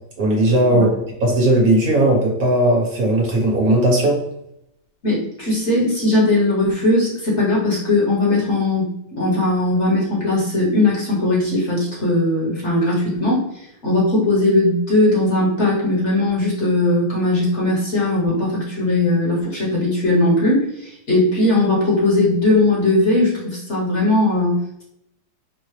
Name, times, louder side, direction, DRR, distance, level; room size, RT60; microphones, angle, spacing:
voice 1, 0.2-0.9 1.2-4.2, right 1 dB, 55° right, -1 dB, 1.5 m, -17 dB
voice 2, 5.0-24.8, left 2 dB, 45° left, -5 dB, 1.1 m, -19 dB
4.6 x 2.0 x 3.2 m, 0.78 s
omnidirectional pair, 2.0 m